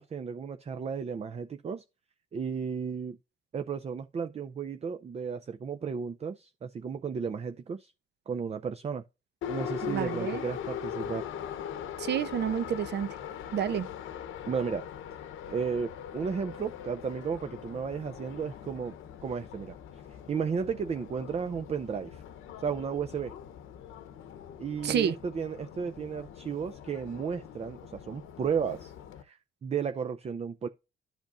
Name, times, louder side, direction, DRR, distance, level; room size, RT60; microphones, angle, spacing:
voice 1, 0.0-1.8 2.3-3.2 3.5-7.9 8.3-9.0 9.5-11.3 14.5-14.8 15.5-19.0 19.2-19.7 20.3-22.2 22.6-23.3 24.6-28.9 29.2-30.7, right 6 dB, 30° right, 0.5 m, -34 dB
Subway metro underground, 9.4-29.2, left 9 dB, 85° left, 0.9 m, -41 dB
voice 2, 9.8-10.4 12.0-13.1 13.5-13.9 24.8-25.2, right 9 dB, 60° right, 0.7 m, -29 dB
11.5 x 5.1 x 2.5 m
cardioid pair, 90°, 20 cm